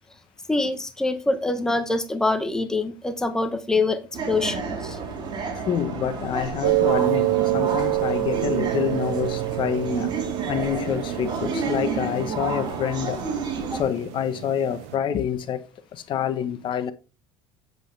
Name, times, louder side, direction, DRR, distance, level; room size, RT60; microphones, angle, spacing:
voice 1, 0.5-4.0 4.3-5.0 13.7-13.8, left 2 dB, 5° left, 0.9 m, -25 dB
sound 1, 4.1-13.8, right 5 dB, 40° right, 3.6 m, -30 dB
voice 2, 5.5-13.2 13.7-15.6 15.9-16.9, left 9 dB, 45° left, 1.0 m, -27 dB
sound 2, 6.6-15.0, right 16 dB, 75° right, 0.6 m, -27 dB
8.0 x 7.7 x 3.3 m
cardioid pair, 120°, 11 cm